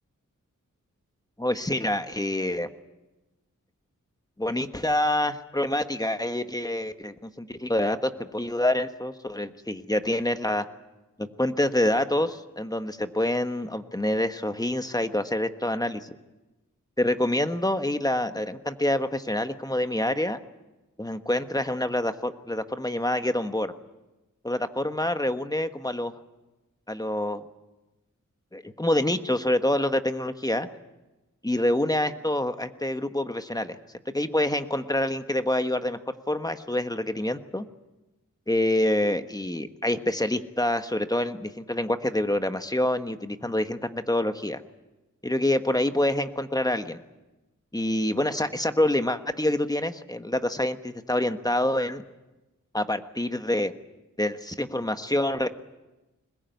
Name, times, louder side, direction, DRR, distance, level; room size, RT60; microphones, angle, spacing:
voice 1, 1.4-2.7 4.4-10.6 11.2-16.1 17.0-20.4 21.0-23.7 24.4-26.1 26.9-27.4 28.5-30.7 31.4-33.8 34.1-36.0 36.3-37.6 38.5-44.6 45.2-47.0 47.7-52.0 52.7-53.7 54.2-55.5, left 1 dB, 10° left, 9 dB, 1.3 m, -26 dB
22.0 x 21.0 x 9.3 m, 1.0 s
wide cardioid pair, 80°, 32 cm